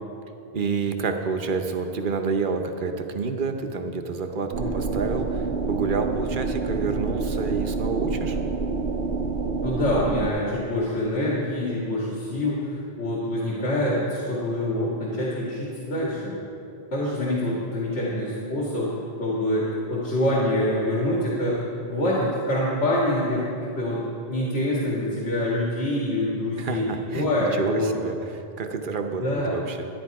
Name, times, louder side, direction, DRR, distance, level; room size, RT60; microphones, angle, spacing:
voice 1, 0.5-8.4 26.6-29.9, right 4 dB, 55° right, 5 dB, 0.9 m, -29 dB
sound 1, 4.5-10.3, right 4 dB, 85° right, 0.9 m, -27 dB
voice 2, 9.6-16.4 16.9-18.9 19.2-26.8 27.1-27.9 29.2-29.5, left 1 dB, 90° left, -6 dB, 2.2 m, -26 dB
11.0 x 10.5 x 4.7 m, 2.7 s
omnidirectional pair, 1.1 m